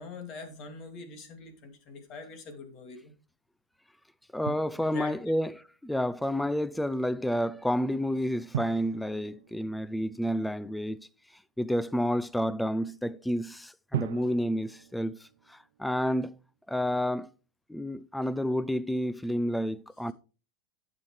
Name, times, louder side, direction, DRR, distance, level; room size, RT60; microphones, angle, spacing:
voice 1, 0.0-3.1 4.8-5.2, left 4 dB, 45° left, 2.5 m, -43 dB
voice 2, 4.3-5.5 5.8-11.1 11.6-16.3 16.7-17.3 17.7-20.1, equal, 5° left, 0.4 m, -30 dB
Drum, 4.5-5.5 8.5-10.4 13.9-15.9, right 10 dB, 85° right, 0.4 m, -39 dB
11.0 x 7.4 x 3.2 m
supercardioid pair, 130°, 0 cm